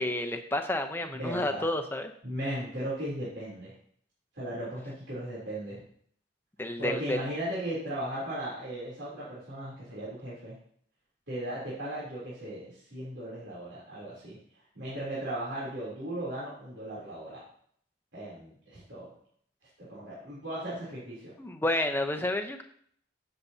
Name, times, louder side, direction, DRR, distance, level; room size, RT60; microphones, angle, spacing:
voice 1, 0.0-2.1 6.6-7.2 21.4-22.6, left 1 dB, 10° left, 6 dB, 0.8 m, -30 dB
voice 2, 1.0-1.7 2.2-3.7 4.3-5.8 6.8-10.5 11.3-14.4 14.7-17.4 18.1-19.1 19.8-21.3, right 1 dB, 75° right, -8 dB, 3.4 m, -37 dB
15.0 x 6.9 x 2.8 m, 0.62 s
head